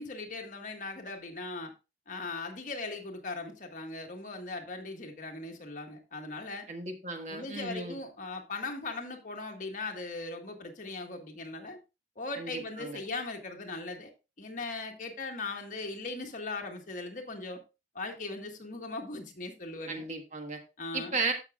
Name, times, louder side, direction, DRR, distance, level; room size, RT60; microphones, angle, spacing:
voice 1, 0.0-1.7 2.1-6.7 7.3-11.8 12.1-14.1 14.4-17.6 17.9-20.1 20.8-21.2, left 3 dB, 50° left, 1.6 m, -39 dB
voice 2, 6.7-8.0 12.4-13.0 19.9-20.6 20.9-21.3, right 3 dB, 40° right, 1.4 m, -35 dB
13.5 x 6.0 x 2.4 m
head